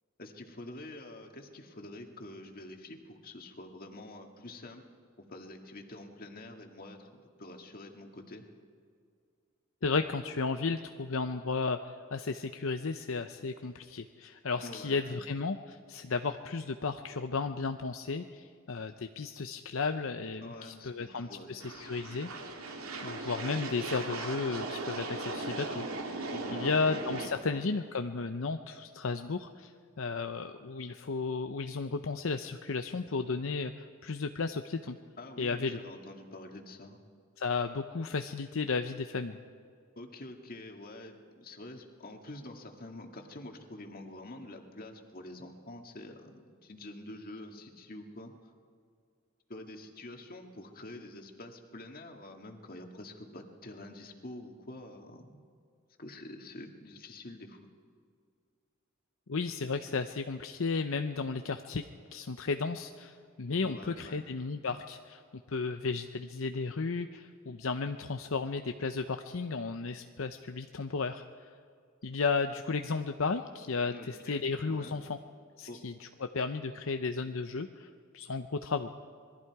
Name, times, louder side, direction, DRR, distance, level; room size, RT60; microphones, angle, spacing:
voice 1, 0.2-4.8 5.3-7.1 7.4-8.4 14.6-15.2 20.4-22.3 26.3-27.7 35.2-37.0 40.0-48.3 49.5-55.4 56.0-57.6 63.6-64.3 73.9-75.0 75.7-75.8, left 1 dB, 45° left, 4 dB, 2.0 m, -47 dB
voice 2, 9.8-22.3 22.6-25.9 26.5-29.7 30.0-35.0 35.4-35.8 37.4-39.4 59.3-61.8 62.1-65.2 65.5-71.5 72.0-75.2 75.6-77.9 78.1-78.9, left 4 dB, 65° left, 7 dB, 0.7 m, -34 dB
sound 1, 21.6-27.3, right 2 dB, 85° right, 2.6 m, -38 dB
26.5 x 21.0 x 4.8 m, 2.2 s
head